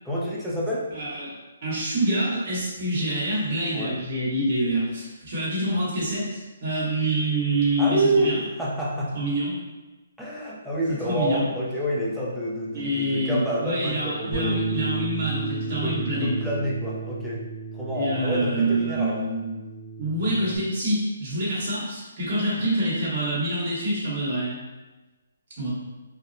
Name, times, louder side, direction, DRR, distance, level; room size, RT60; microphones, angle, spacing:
voice 1, 0.0-0.9 3.7-3.9 7.8-9.2 10.2-14.6 15.7-17.4 17.7-19.2, right 1 dB, ahead, -7 dB, 0.5 m, -28 dB
voice 2, 0.9-1.3 1.6-8.4 9.1-9.6 11.0-11.5 12.7-16.3 17.9-19.6 20.0-24.6 25.6-25.7, right 1 dB, 45° right, -7 dB, 1.4 m, -26 dB
Bass guitar, 14.3-20.6, right 3 dB, 70° right, 0.9 m, -32 dB
4.1 x 2.0 x 2.7 m, 1.1 s
hypercardioid pair, 165°, 0 cm